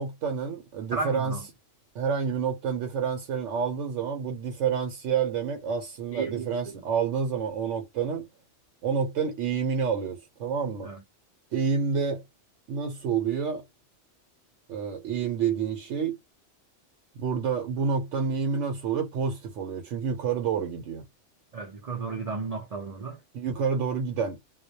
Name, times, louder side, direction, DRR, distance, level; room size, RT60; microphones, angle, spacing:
voice 1, 0.0-1.4 1.9-8.3 8.8-10.9 11.5-12.2 12.7-13.6 14.7-16.2 17.2-21.1 23.3-24.5, right 6 dB, 75° right, 0.9 m, -28 dB
voice 2, 0.9-1.5 6.1-6.7 10.8-11.0 21.5-23.2, right 4 dB, 60° right, 0.4 m, -34 dB
2.2 x 2.0 x 2.7 m
omnidirectional pair, 1.2 m